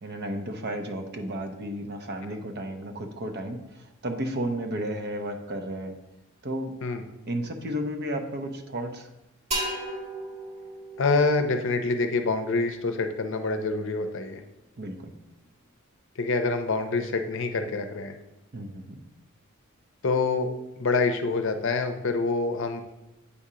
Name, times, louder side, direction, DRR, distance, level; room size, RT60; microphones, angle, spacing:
voice 1, 0.0-6.0 6.4-6.7 7.3-9.1 14.8-15.1 18.5-19.0, right 1 dB, 50° right, 5 dB, 0.7 m, -33 dB
sound 1, 9.5-13.1, right 1 dB, 30° right, 1.7 m, -36 dB
voice 2, 11.0-14.4 16.2-18.2 20.0-20.5 20.8-22.8, left 3 dB, 60° left, 7 dB, 0.6 m, -26 dB
8.4 x 2.8 x 4.9 m, 0.95 s
head